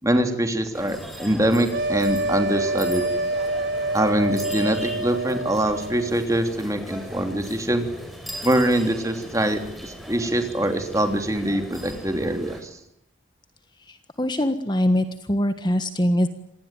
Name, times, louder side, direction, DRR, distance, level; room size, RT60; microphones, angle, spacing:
voice 1, 0.0-3.0 3.9-7.8 8.4-12.7, right 1 dB, 15° right, 7 dB, 3.1 m, -23 dB
sound 1, 0.7-12.6, equal, ahead, 6.0 m, -39 dB
sound 2, 1.7-6.1, right 2 dB, 60° right, 1.5 m, -27 dB
voice 2, 13.9-16.3, left 1 dB, 20° left, 9 dB, 1.5 m, -23 dB
26.5 x 19.5 x 9.1 m, 0.77 s
head